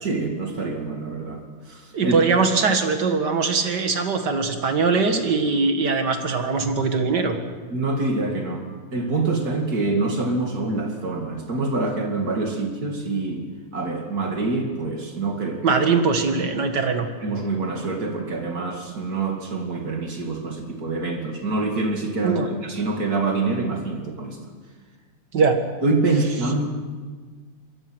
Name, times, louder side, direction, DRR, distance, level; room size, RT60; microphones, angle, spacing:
voice 1, 0.0-2.2 7.7-8.7 8.9-13.5 13.7-15.8 17.2-24.4 25.8-26.7, right 3 dB, 65° right, 2 dB, 2.9 m, -26 dB
voice 2, 1.9-7.4 15.6-17.1 22.2-22.5 25.3-25.6, right 4 dB, 90° right, 6 dB, 2.5 m, -21 dB
26.0 x 21.5 x 6.3 m, 1.5 s
omnidirectional pair, 1.8 m